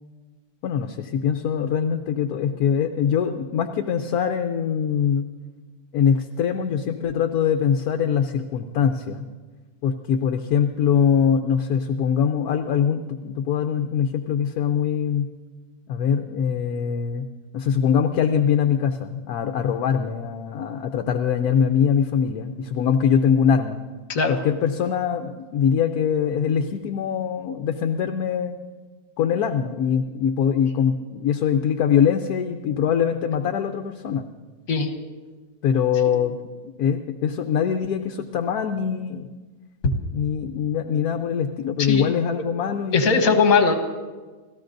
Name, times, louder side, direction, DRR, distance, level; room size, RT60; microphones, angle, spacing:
voice 1, 0.6-5.3 5.9-9.3 9.8-15.3 15.9-17.2 17.5-23.8 24.3-28.6 29.2-34.3 35.6-36.4 36.8-39.3 40.1-43.4, left 7 dB, 75° left, 5 dB, 1.2 m, -23 dB
voice 2, 41.8-42.1 42.9-43.7, left 5 dB, 60° left, 6 dB, 1.6 m, -19 dB
30.0 x 14.0 x 2.6 m, 1.3 s
omnidirectional pair, 1.6 m